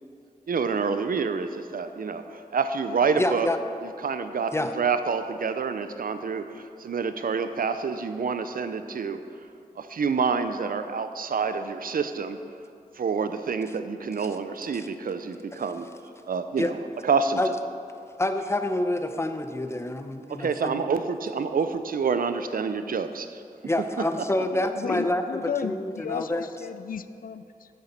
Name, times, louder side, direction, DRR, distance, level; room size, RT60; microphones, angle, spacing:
voice 1, 0.5-3.5 3.8-9.2 9.8-12.4 13.0-15.9 16.3-16.8 17.0-17.4 20.3-23.4, right 5 dB, 75° right, 10 dB, 0.5 m, -27 dB
voice 2, 3.2-3.6 4.5-4.7 14.7-14.9 16.6-16.7 17.4-17.5 18.2-20.8 23.7-25.2 25.6-26.5, left 1 dB, 20° left, 8 dB, 0.7 m, -27 dB
voice 3, 24.5-27.7, left 7 dB, 70° left, 13 dB, 0.4 m, -34 dB
9.4 x 6.6 x 5.8 m, 2.4 s
wide cardioid pair, 60°, 15 cm